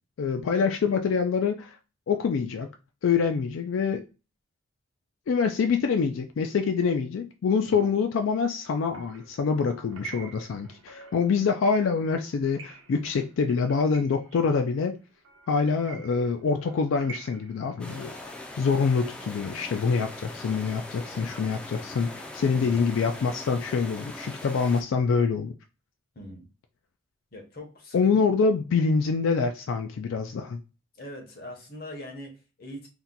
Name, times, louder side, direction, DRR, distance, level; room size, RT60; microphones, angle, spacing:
voice 1, 0.2-1.8 2.1-2.7 3.0-4.1 5.3-14.9 15.5-25.5 27.9-30.6, left 5 dB, 85° left, 0.3 m, -25 dB
sound 1, 8.7-18.4, right 7 dB, 85° right, 0.8 m, -48 dB
sound 2, 17.8-24.8, left 1 dB, 5° left, 0.3 m, -41 dB
voice 2, 27.3-28.2 30.9-32.9, left 1 dB, 50° left, 0.9 m, -42 dB
2.8 x 2.2 x 3.8 m
head